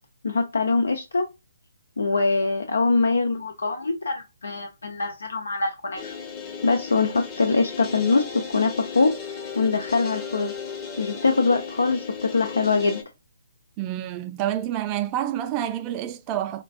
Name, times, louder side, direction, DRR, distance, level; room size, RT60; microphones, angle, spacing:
voice 1, 0.2-1.3 2.0-6.1 6.6-9.1 9.6-10.5 11.0-13.0, left 3 dB, 75° left, 0.5 m, -23 dB
sound 1, 6.0-13.0, left 6 dB, 25° left, 0.7 m, -36 dB
voice 2, 13.8-16.6, right 11 dB, 25° right, 0.4 m, -28 dB
4.4 x 2.4 x 2.3 m
figure-of-eight pair, 135°, 0 cm